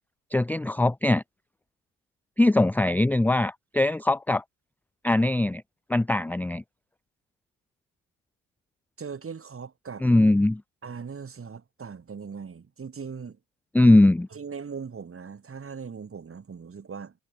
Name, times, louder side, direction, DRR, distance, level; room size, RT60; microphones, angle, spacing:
voice 1, 0.3-1.2 2.4-4.4 5.0-5.6 5.9-6.6 10.0-10.6 13.7-14.3, left 2 dB, 5° left, 0.6 m, -21 dB
voice 2, 9.0-10.1 10.8-13.4 14.3-17.1, right 6 dB, 35° right, 4.1 m, -39 dB
figure-of-eight pair, 50°, 39 cm